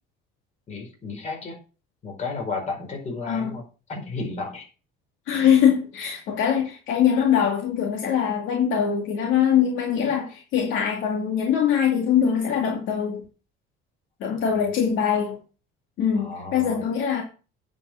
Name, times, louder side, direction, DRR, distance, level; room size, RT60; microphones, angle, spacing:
voice 1, 0.7-1.6 2.0-4.7 14.3-14.4 16.1-16.8, left 3 dB, 35° left, 4.9 m, -33 dB
voice 2, 5.3-13.2 14.2-15.4 16.0-17.2, left 8 dB, 65° left, 2.5 m, -22 dB
9.9 x 5.5 x 6.4 m
cardioid pair, 145°, 21 cm